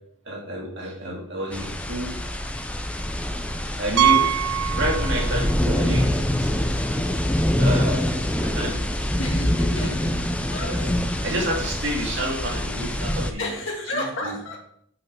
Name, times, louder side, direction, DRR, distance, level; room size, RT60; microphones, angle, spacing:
voice 1, 0.3-2.2 3.8-4.3 4.7-6.1 6.4-6.5 7.6-9.1 9.7-9.9 10.5-13.5 13.9-14.4, right 1 dB, 55° right, -1 dB, 2.2 m, -29 dB
sound 1, 1.5-13.3, left 1 dB, 5° left, 0.4 m, -25 dB
Piano, 4.0-5.6 5.8-6.0 6.6-6.7 6.9-7.0 9.1-9.2, right 10 dB, 90° right, 0.3 m, -23 dB
voice 2, 9.2-10.2 10.5-10.7 13.4-14.6, left 1 dB, 65° left, -1 dB, 2.1 m, -31 dB
5.9 x 5.3 x 5.9 m, 0.70 s
head